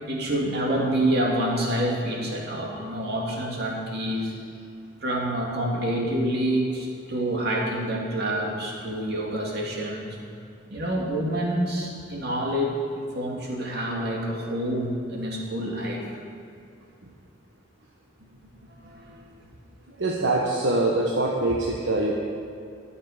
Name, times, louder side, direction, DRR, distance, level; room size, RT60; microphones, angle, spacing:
voice 1, 0.1-4.3 5.0-10.2 10.7-16.0 18.7-19.3, right 1 dB, 55° right, -2 dB, 2.7 m, -27 dB
voice 2, 20.0-22.1, right 2 dB, 75° right, -2 dB, 1.3 m, -24 dB
22.0 x 7.3 x 5.1 m, 2.5 s
head